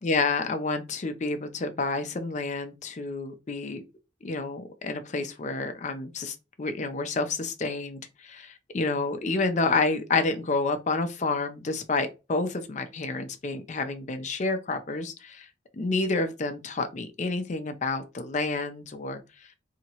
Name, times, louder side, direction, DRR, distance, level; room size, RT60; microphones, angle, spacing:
voice 1, 0.0-3.8 4.2-15.5 15.7-19.2, left 3 dB, 40° left, 0.5 m, -29 dB
2.8 x 2.8 x 2.8 m
head